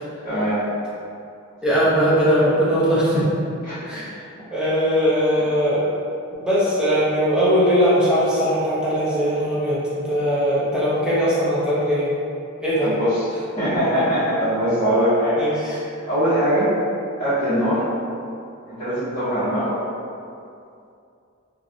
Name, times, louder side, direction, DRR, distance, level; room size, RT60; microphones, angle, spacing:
voice 1, 0.2-0.6 3.6-3.8 12.8-13.3 13.6-15.7 16.1-16.7 17.2-17.8 18.7-19.8, equal, 35° left, -21 dB, 1.4 m, -21 dB
voice 2, 1.6-3.3 3.8-4.1 4.5-5.8 6.3-12.1 12.6-12.9 15.4-15.6, equal, 5° right, -10 dB, 0.7 m, -20 dB
3.1 x 2.5 x 2.5 m, 2.5 s
head